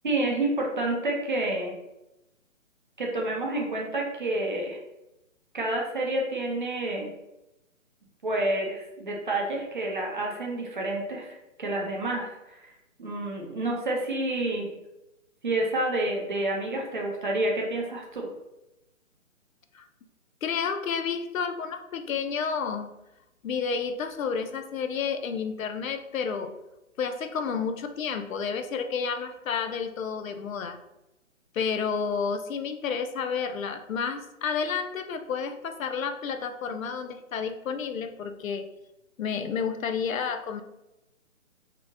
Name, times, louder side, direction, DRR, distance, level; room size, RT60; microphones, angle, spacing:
voice 1, 0.0-1.8 3.0-4.8 5.5-7.1 8.2-12.7 13.0-14.7 15.4-18.3, right 2 dB, 40° right, -1 dB, 0.5 m, -29 dB
voice 2, 20.4-22.9 23.4-26.5 27.0-30.8 31.5-38.7 39.2-40.6, left 6 dB, 80° left, 8 dB, 0.5 m, -30 dB
2.8 x 2.1 x 2.6 m, 0.93 s
hypercardioid pair, 160°, 40 cm